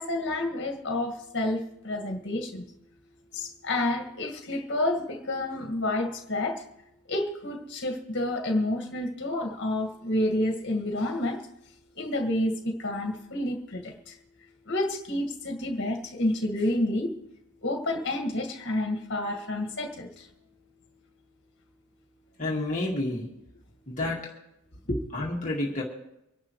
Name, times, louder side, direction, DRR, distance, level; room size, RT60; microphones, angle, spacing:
voice 1, 0.0-2.7 3.3-6.7 7.1-11.5 12.0-14.2 14.7-17.1 17.6-20.3 24.9-25.0, left 1 dB, 50° left, 1.9 m, -29 dB
voice 2, 22.4-23.3 23.9-24.3 25.1-25.8, left 2 dB, 35° left, 2.0 m, -29 dB
25.0 x 11.0 x 3.2 m
head